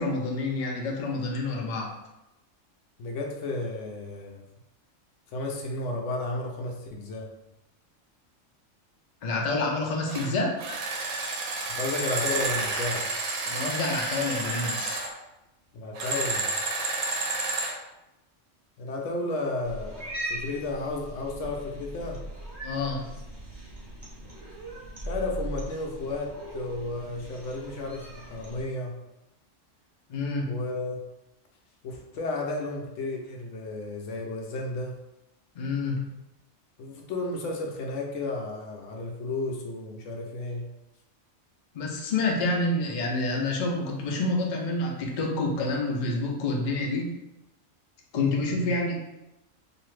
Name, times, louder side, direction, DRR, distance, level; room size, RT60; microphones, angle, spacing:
voice 1, 0.0-1.9 9.2-10.5 13.5-15.0 22.6-23.2 30.1-30.5 35.6-36.0 41.7-47.1 48.1-49.0, left 2 dB, 55° left, -1 dB, 0.5 m, -28 dB
voice 2, 3.0-4.4 5.3-7.3 11.7-13.1 15.7-16.5 18.8-22.2 25.1-29.0 30.5-31.1 31.8-35.0 36.8-40.7 48.5-48.7, left 2 dB, 75° left, 0 dB, 0.9 m, -33 dB
sound 1, 10.1-10.3 10.6-15.1 15.9-17.8, right 3 dB, 70° right, 0.8 m, -30 dB
Cat, 19.6-28.6, right 1 dB, 25° right, 0.7 m, -39 dB
2.7 x 2.5 x 3.2 m, 0.93 s
omnidirectional pair, 1.3 m